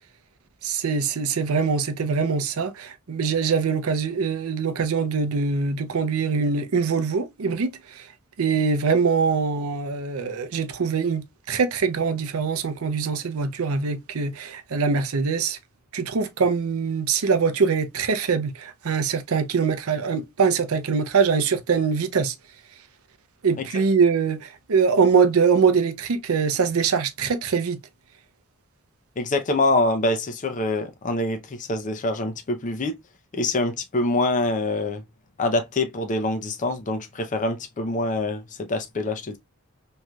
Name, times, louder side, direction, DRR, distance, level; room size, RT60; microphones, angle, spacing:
voice 1, 0.6-8.1 8.4-15.6 15.9-22.3 23.4-27.8, right 5 dB, 75° right, 0.6 m, -23 dB
voice 2, 29.2-32.9 33.3-35.0 35.4-38.4 38.7-39.4, left 2 dB, 35° left, 0.5 m, -25 dB
3.1 x 2.7 x 2.2 m
head